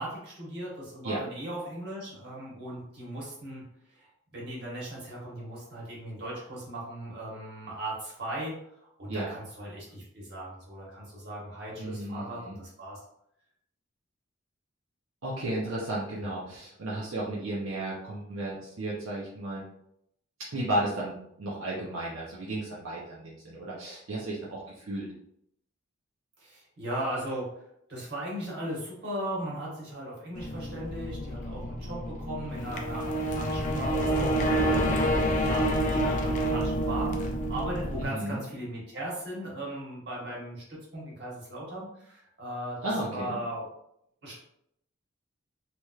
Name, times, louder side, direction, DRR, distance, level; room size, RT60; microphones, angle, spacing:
voice 1, 0.0-3.6 3.9-13.0 16.4-16.6 26.4-27.5 27.9-42.8 43.1-43.7 44.2-44.3, right 1 dB, 55° right, -5 dB, 1.3 m, -38 dB
voice 2, 11.8-12.6 15.2-19.6 20.5-25.1 38.0-38.4 42.8-43.4, right 1 dB, 80° right, -5 dB, 0.6 m, -34 dB
sound 1, 30.4-38.0, right 1 dB, 35° left, 0.4 m, -28 dB
3.1 x 2.9 x 2.3 m, 0.74 s
head